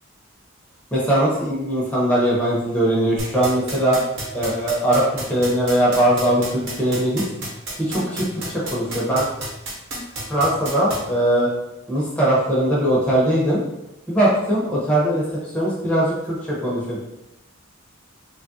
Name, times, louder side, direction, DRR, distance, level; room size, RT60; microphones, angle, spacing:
voice 1, 0.9-4.0 4.3-7.2 7.8-9.3 10.3-11.5 11.9-13.6 14.1-15.2 15.5-17.0, right 1 dB, 5° left, -7 dB, 0.7 m, -20 dB
sound 1, 3.2-11.0, right 2 dB, 60° right, 0.9 m, -30 dB
3.2 x 2.3 x 2.6 m, 0.90 s
head